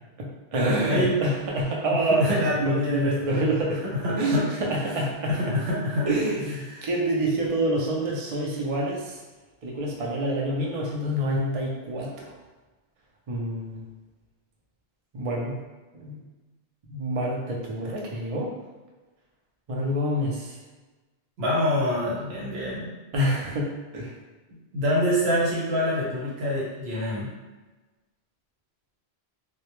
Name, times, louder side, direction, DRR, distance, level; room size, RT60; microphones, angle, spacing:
voice 1, 0.2-3.8 4.1-5.3 6.1-9.2 9.6-12.3 13.3-13.8 15.1-15.6 15.9-16.2 16.9-18.5 19.7-20.5 23.1-24.1, right 1 dB, 55° right, -3 dB, 0.4 m, -27 dB
voice 2, 0.9-1.2 2.1-3.5 3.9-4.4 5.3-6.1 6.7-6.9 21.4-22.9 24.7-27.3, left 1 dB, 70° right, -6 dB, 1.0 m, -26 dB
2.1 x 2.0 x 2.9 m, 1.2 s
omnidirectional pair, 1.1 m